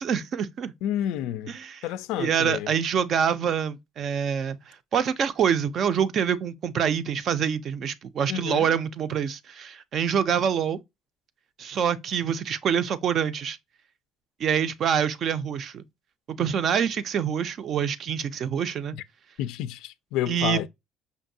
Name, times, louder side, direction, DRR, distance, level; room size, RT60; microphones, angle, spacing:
voice 1, 0.0-0.7 1.5-1.8 2.2-10.8 11.6-13.6 14.4-15.8 16.3-19.0 20.3-20.7, right 8 dB, 45° right, 0.4 m, -26 dB
voice 2, 0.8-1.5 1.8-2.7 8.3-8.8 19.4-20.7, left 12 dB, 85° left, 0.3 m, -30 dB
5.4 x 2.6 x 2.6 m
cardioid pair, 135°, 0 cm